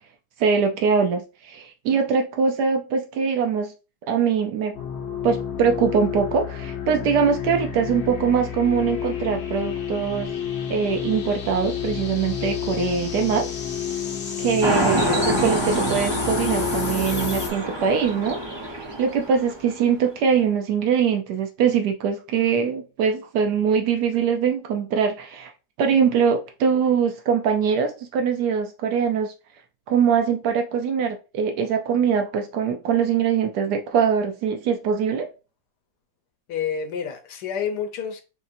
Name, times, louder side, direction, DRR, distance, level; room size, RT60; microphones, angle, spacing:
voice 1, 0.4-3.7 4.1-4.8 5.2-10.3 10.7-13.5 14.4-25.5 25.8-29.3 29.9-35.3, right 6 dB, 80° right, 1.2 m, -22 dB
sound 1, 4.7-17.5, left 8 dB, 50° left, 0.9 m, -30 dB
sound 2, 14.6-19.8, right 1 dB, 30° right, 0.5 m, -26 dB
voice 2, 36.5-38.2, left 7 dB, 80° left, 1.4 m, -28 dB
6.6 x 2.8 x 2.6 m
omnidirectional pair, 1.8 m